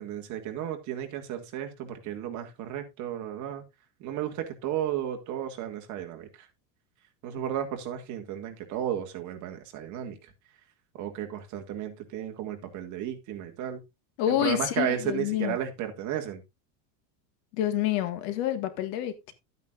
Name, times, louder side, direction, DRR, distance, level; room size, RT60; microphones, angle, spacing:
voice 1, 0.0-3.6 4.0-6.5 7.2-10.3 10.9-13.8 14.3-16.4, right 10 dB, 40° right, 2.0 m, -33 dB
voice 2, 14.2-15.6 17.5-19.3, left 12 dB, 60° left, 1.8 m, -28 dB
12.5 x 9.1 x 2.5 m
supercardioid pair, 155°, 45 cm